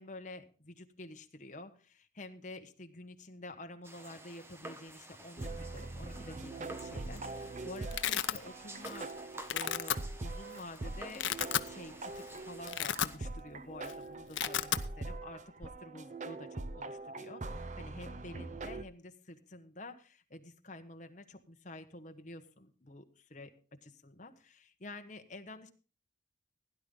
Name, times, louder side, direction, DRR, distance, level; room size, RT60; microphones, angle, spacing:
voice 1, 0.0-9.1 9.5-11.3 11.6-23.5 23.8-25.7, left 2 dB, 40° left, 7 dB, 1.2 m, -49 dB
sound 1, 3.8-13.2, right 1 dB, 15° right, 1.0 m, -51 dB
sound 2, 5.4-18.8, right 2 dB, 40° right, 0.7 m, -43 dB
Domestic sounds home sounds, 6.9-7.3 7.5-8.4 8.8-9.1 9.4-10.0 10.6-10.7 11.0-11.7 12.1-12.2 12.6-13.5 13.7-13.9 14.2-14.8, left 10 dB, 80° left, 0.6 m, -33 dB
16.5 x 10.5 x 3.8 m, 0.36 s
head